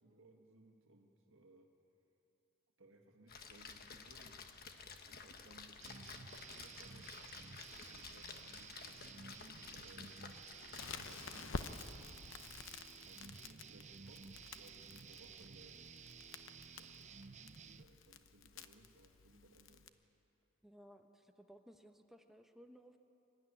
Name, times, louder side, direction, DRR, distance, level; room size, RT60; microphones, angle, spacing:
voice 1, 0.0-1.7 2.8-4.5 5.0-7.1 7.7-10.2 10.6-12.4 13.0-17.1 17.5-19.9, right 2 dB, 70° right, 1 dB, 1.8 m, -64 dB
Splash splatter, 3.3-11.4, left 5 dB, 50° left, 1.3 m, -53 dB
sound 1, 5.8-17.8, right 5 dB, 35° right, 0.7 m, -54 dB
Crackle, 10.7-19.9, left 4 dB, 65° left, 0.9 m, -50 dB
voice 2, 20.6-23.0, equal, ahead, 5 dB, 1.0 m, -60 dB
25.5 x 13.0 x 10.0 m, 2.9 s
head